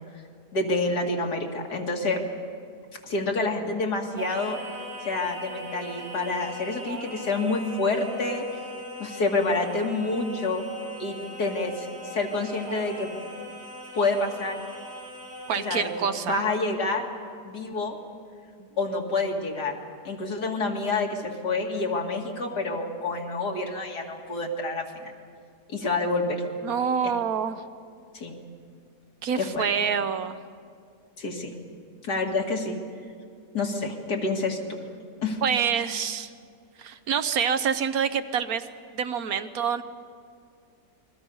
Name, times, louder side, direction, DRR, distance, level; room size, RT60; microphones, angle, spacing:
voice 1, 0.5-2.2 3.0-4.6 5.0-8.5 9.0-10.7 11.0-13.1 13.9-14.6 15.6-17.1 17.4-18.0 18.8-19.8 20.0-25.1 25.7-26.4 28.1-28.3 29.4-29.6 31.2-31.5 32.0-32.8 33.5-34.9 35.2-35.4, left 3 dB, 85° left, 1 dB, 2.7 m, -28 dB
Singing, 4.2-16.2, equal, 90° right, 3.2 m, -40 dB
voice 2, 15.5-16.4 26.6-27.6 29.2-30.4 35.4-36.3 36.8-38.7 38.9-39.8, right 7 dB, 65° right, 10 dB, 1.3 m, -26 dB
28.5 x 21.5 x 5.5 m, 2.2 s
omnidirectional pair, 1.7 m